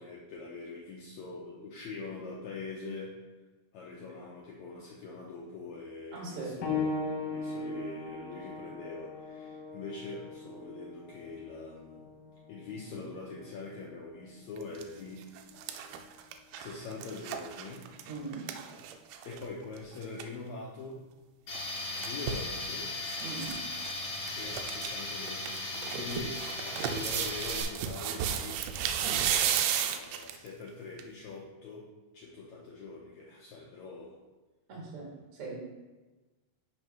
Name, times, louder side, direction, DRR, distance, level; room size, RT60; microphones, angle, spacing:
voice 1, 0.0-3.1 3.7-6.9 7.3-12.0 12.5-15.3 16.5-17.8 19.2-21.0 22.0-22.9 24.3-28.6 29.4-31.9 32.1-34.2, left 3 dB, 90° left, -4 dB, 1.6 m, -43 dB
voice 2, 6.1-6.5 18.1-18.4 23.2-23.5 29.0-29.2 34.7-35.1 35.3-35.5, right 3 dB, 45° right, -3 dB, 2.4 m, -40 dB
sound 1, 6.6-16.8 17.8-17.9 18.7-18.8, left 3 dB, 70° left, 2.6 m, -40 dB
sound 2, 14.6-14.8 15.2-19.5 19.8-19.9 20.0-20.3 21.6-22.5 23.1-23.6 23.8-23.9 24.3-24.9 25.3-30.5 31.0-31.1, right 9 dB, 80° right, 2.4 m, -33 dB
Tools, 21.5-27.6, left 2 dB, 45° left, 3.4 m, -37 dB
5.7 x 4.6 x 5.5 m, 1.2 s
omnidirectional pair, 4.4 m